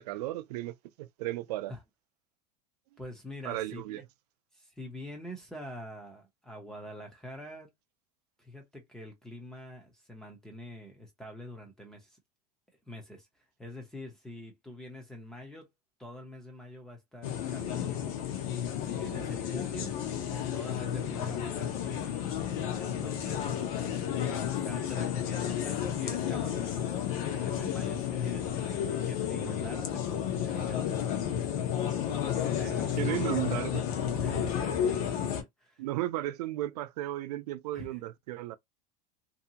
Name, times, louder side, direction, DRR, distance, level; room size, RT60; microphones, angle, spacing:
voice 1, 0.0-1.7 3.4-4.0 33.0-33.9 35.8-38.6, right 15 dB, 80° right, 0.4 m, -34 dB
voice 2, 3.0-4.0 4.5-7.7 8.4-12.2 12.9-13.3 13.6-15.7 16.0-18.1 18.8-19.9 20.5-22.4 22.7-26.8 27.3-31.4 32.6-33.3 34.2-35.2 35.6-35.8 37.7-37.9, left 1 dB, 5° left, 0.5 m, -45 dB
sound 1, 17.2-35.4, left 9 dB, 60° left, 0.7 m, -32 dB
2.6 x 2.3 x 2.7 m
supercardioid pair, 180°, 20 cm